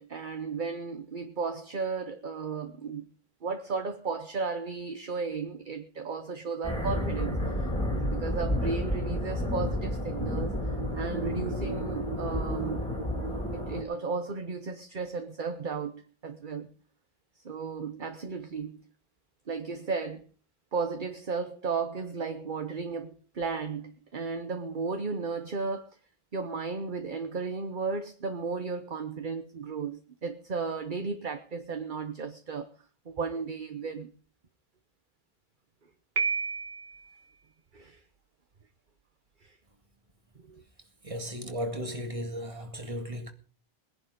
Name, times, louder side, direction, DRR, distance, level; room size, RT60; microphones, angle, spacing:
voice 1, 0.0-3.1 3.4-10.6 10.9-12.9 13.5-16.7 17.4-18.9 19.5-20.2 20.7-25.9 26.3-32.7 33.1-34.1 37.7-38.0 39.4-39.5 40.5-40.6, right 4 dB, 50° right, 1.2 m, -34 dB
sound 1, 6.6-13.8, equal, 5° left, 2.6 m, -31 dB
Piano, 36.2-37.1, right 5 dB, 65° right, 1.9 m, -30 dB
voice 2, 41.0-43.3, equal, 30° right, 2.1 m, -35 dB
20.0 x 11.0 x 5.2 m
omnidirectional pair, 1.1 m